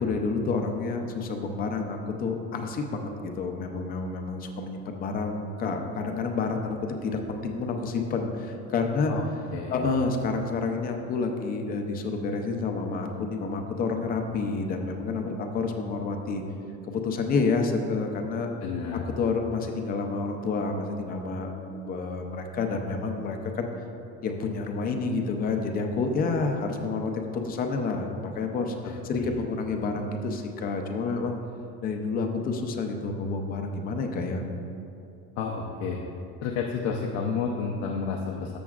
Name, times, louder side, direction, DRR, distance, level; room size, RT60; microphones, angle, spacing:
voice 1, 0.0-6.8 7.0-9.1 9.7-16.4 16.9-18.5 18.9-23.7 24.2-31.4 31.8-34.4, left 4 dB, 30° left, 4 dB, 0.6 m, -29 dB
voice 2, 9.5-9.9 18.6-19.2 28.8-29.4 35.4-36.0 36.4-38.6, left 5 dB, 60° left, -1 dB, 0.7 m, -31 dB
13.0 x 6.9 x 2.4 m, 2.6 s
cardioid pair, 170°, 31 cm